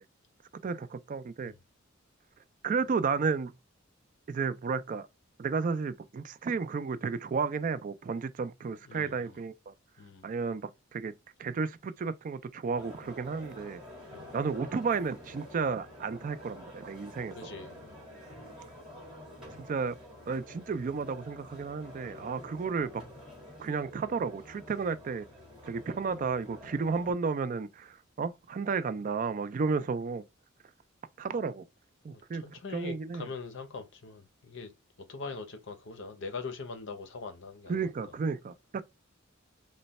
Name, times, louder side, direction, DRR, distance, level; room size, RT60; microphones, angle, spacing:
voice 1, 0.6-1.5 2.6-3.5 4.3-5.1 5.4-9.7 10.2-11.1 11.4-13.8 14.3-17.5 19.6-20.0 20.3-23.0 23.6-25.3 25.6-30.2 31.2-31.6 32.0-32.4 32.7-33.3 37.7-38.8, right 5 dB, 40° right, 0.3 m, -32 dB
voice 2, 8.9-9.2 10.0-10.2 14.1-14.3 17.3-18.0 22.0-22.1 32.1-34.7 35.0-37.8, left 4 dB, 65° left, 0.7 m, -42 dB
sound 1, 12.8-27.1, left 1 dB, 5° right, 1.6 m, -49 dB
3.1 x 2.1 x 4.0 m
head